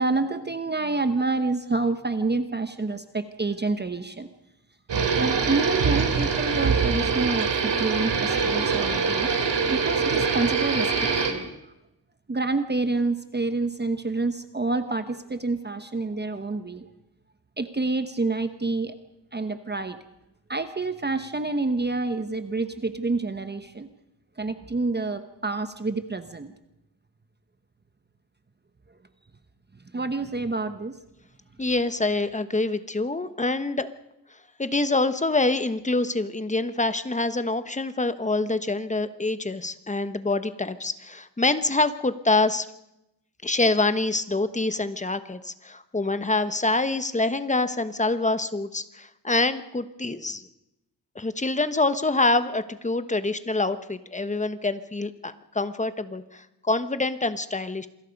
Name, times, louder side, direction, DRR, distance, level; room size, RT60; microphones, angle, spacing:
voice 1, 0.0-4.3 5.1-9.3 9.7-10.9 11.3-11.5 12.3-16.9 17.6-19.0 19.3-20.0 20.5-23.9 24.4-26.5 29.9-31.0, right 3 dB, 25° right, 9 dB, 1.1 m, -28 dB
sound 1, 4.9-11.3, right 5 dB, 85° right, 3.0 m, -24 dB
voice 2, 31.6-33.9 34.6-42.7 43.4-50.4 51.1-57.9, left 2 dB, 15° left, 11 dB, 1.2 m, -26 dB
28.0 x 21.5 x 5.3 m, 0.88 s
wide cardioid pair, 130°, 42 cm